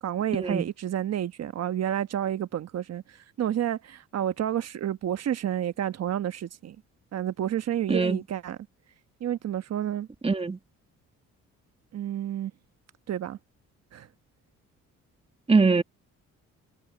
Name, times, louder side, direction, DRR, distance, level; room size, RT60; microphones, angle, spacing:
voice 1, 0.0-6.8 7.1-8.6 9.2-10.1 11.9-12.5 13.1-13.4 13.9-14.1, right 10 dB, 55° right, 1.2 m, -30 dB
voice 2, 7.9-8.2 10.2-10.6 15.5-15.8, right 4 dB, 20° right, 1.3 m, -22 dB
cardioid pair, 90°, 30 cm